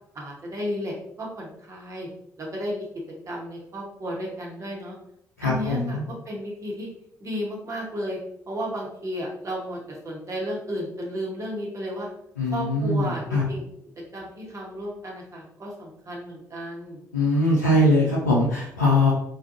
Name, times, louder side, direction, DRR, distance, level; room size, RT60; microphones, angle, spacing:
voice 1, 0.1-2.1 2.4-2.9 3.3-5.0 5.4-6.9 7.2-8.2 8.5-12.1 12.5-13.6 14.1-17.0, equal, 35° right, -2 dB, 0.8 m, -33 dB
voice 2, 5.4-6.1 12.4-13.4 17.1-19.1, left 1 dB, 90° left, -7 dB, 0.4 m, -21 dB
3.4 x 2.1 x 2.5 m, 0.72 s
figure-of-eight pair, 40°, 9 cm